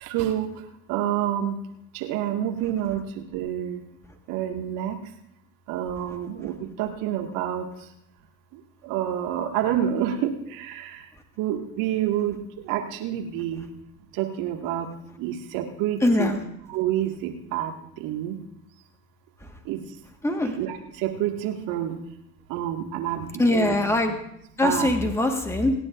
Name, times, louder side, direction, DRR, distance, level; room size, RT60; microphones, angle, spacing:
voice 1, 0.0-0.5 0.9-1.5 1.9-3.8 4.3-5.0 5.7-7.7 8.8-10.3 10.6-10.9 11.4-12.4 12.7-13.7 14.2-14.9 15.2-16.3 16.7-17.7 18.0-18.4 19.7-19.8 20.6-21.9 22.5-23.8 24.6-24.9, right 11 dB, 50° right, 3 dB, 2.1 m, -28 dB
voice 2, 16.0-16.4 20.2-20.6 23.4-24.1 24.6-25.7, left 2 dB, 5° left, 5 dB, 1.7 m, -22 dB
29.0 x 9.8 x 2.6 m, 0.77 s
figure-of-eight pair, 75°, 42 cm